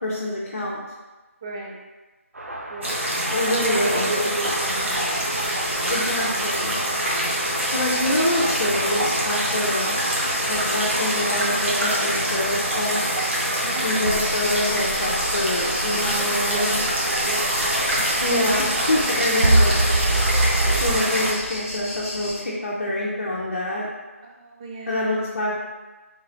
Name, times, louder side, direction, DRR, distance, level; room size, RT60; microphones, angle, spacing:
voice 1, 0.0-0.8 3.3-4.3 5.9-6.7 7.7-10.0 10.5-13.0 13.8-16.8 18.2-19.7 20.6-23.9 24.9-25.5, left 1 dB, 60° left, -6 dB, 0.7 m, -26 dB
voice 2, 1.4-1.8 2.7-3.0 3.6-5.2 7.9-8.0 13.6-14.1 16.5-16.7 17.3-17.4 24.2-25.3, right 2 dB, 20° right, -2 dB, 0.5 m, -32 dB
sound 1, 2.3-4.9 7.4-7.5 14.0-21.0, right 1 dB, 70° right, 0.5 m, -26 dB
sound 2, 2.8-21.3, right 1 dB, 55° right, 1.0 m, -24 dB
sound 3, 4.5-22.4, left 1 dB, 25° left, 1.2 m, -36 dB
3.6 x 2.9 x 2.7 m, 1.2 s
figure-of-eight pair, 155°, 8 cm